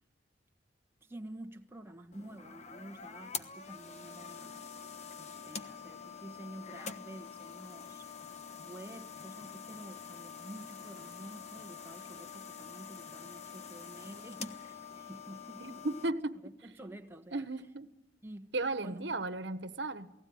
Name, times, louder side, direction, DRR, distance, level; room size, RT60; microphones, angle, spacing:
voice 1, 1.0-4.7 5.1-8.0 8.6-15.9 16.4-17.4 18.2-18.5 18.8-19.2, right 1 dB, 10° right, 1.4 m, -49 dB
sound 1, 2.1-16.1, left 6 dB, 35° left, 1.3 m, -46 dB
voice 2, 15.6-16.5 17.3-17.9 18.5-20.1, right 2 dB, 70° right, 1.4 m, -35 dB
28.5 x 18.5 x 9.4 m
head